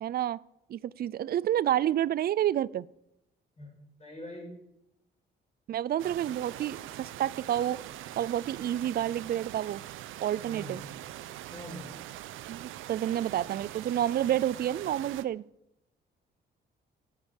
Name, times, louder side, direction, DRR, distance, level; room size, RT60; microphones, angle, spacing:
voice 1, 0.0-0.4 0.7-2.9 5.7-7.8 8.2-9.8 10.2-10.8 12.5-15.4, right 11 dB, 50° right, 20 dB, 0.4 m, -29 dB
voice 2, 4.0-4.5 10.5-10.9 11.5-11.9, equal, 35° left, 0 dB, 6.0 m, -43 dB
sound 1, 6.0-15.2, right 13 dB, 90° right, 0.7 m, -43 dB
14.0 x 8.3 x 7.1 m, 0.84 s
cardioid pair, 90°, 20 cm